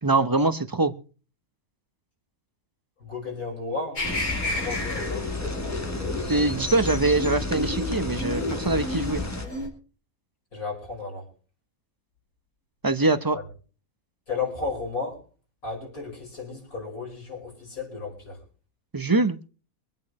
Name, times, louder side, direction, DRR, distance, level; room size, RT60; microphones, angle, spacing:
voice 1, 0.0-0.9 6.3-9.2 12.8-13.4 18.9-19.4, right 2 dB, 20° right, 10 dB, 0.6 m, -23 dB
voice 2, 3.0-4.1 4.4-5.3 10.5-11.2 13.3-13.4 14.3-15.2 15.6-18.4, left 4 dB, 75° left, -1 dB, 6.1 m, -33 dB
sound 1, 4.0-9.7, left 2 dB, 90° left, 4.4 m, -32 dB
sound 2, 4.0-9.5, left 2 dB, 15° left, 0.7 m, -32 dB
25.0 x 8.9 x 3.2 m, 0.38 s
omnidirectional pair, 1.5 m